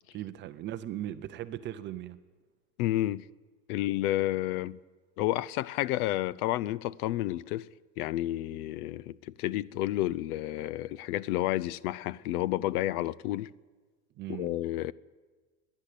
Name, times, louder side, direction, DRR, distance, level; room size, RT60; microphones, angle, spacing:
voice 1, 0.1-2.2 14.2-14.5, right 12 dB, 25° right, 0.5 m, -38 dB
voice 2, 2.8-3.2 3.7-4.8 5.2-7.7 8.0-13.5 14.3-14.9, left 15 dB, 70° left, 0.7 m, -30 dB
29.0 x 11.0 x 8.4 m
supercardioid pair, 155°, 46 cm